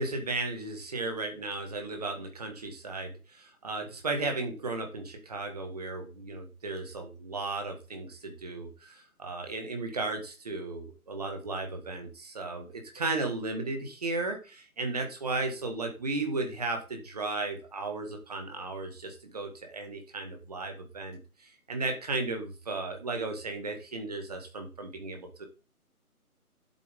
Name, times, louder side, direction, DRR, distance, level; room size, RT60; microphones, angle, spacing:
voice 1, 0.0-25.4, right 3 dB, 25° right, 4 dB, 1.9 m, -35 dB
11.5 x 8.4 x 3.8 m, 0.33 s
figure-of-eight pair, 160°, 45 cm